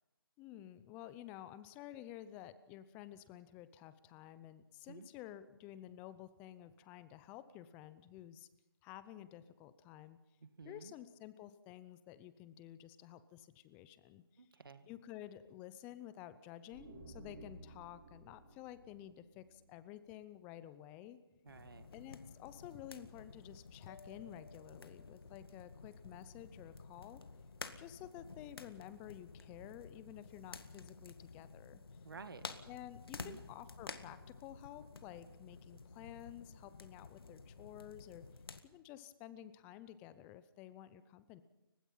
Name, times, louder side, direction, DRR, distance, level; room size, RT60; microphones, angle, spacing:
voice 1, 0.4-8.5 8.8-10.2 10.6-14.5 14.9-21.2 21.9-27.2 27.8-31.8 32.7-38.3 38.6-41.4, left 12 dB, 10° left, 15 dB, 0.6 m, -52 dB
voice 2, 10.6-10.9 14.4-14.9 21.5-21.9 32.0-32.4 33.2-33.4, right 5 dB, 60° right, 10 dB, 2.0 m, -52 dB
sound 1, 16.7-20.3, right 2 dB, 40° right, 7.1 m, -56 dB
sound 2, 21.5-38.6, left 4 dB, 65° left, 1.9 m, -52 dB
Mallet percussion, 23.9-25.9, left 4 dB, 45° left, 1.1 m, -61 dB
30.0 x 16.0 x 5.6 m, 1.0 s
figure-of-eight pair, 160°, 13 cm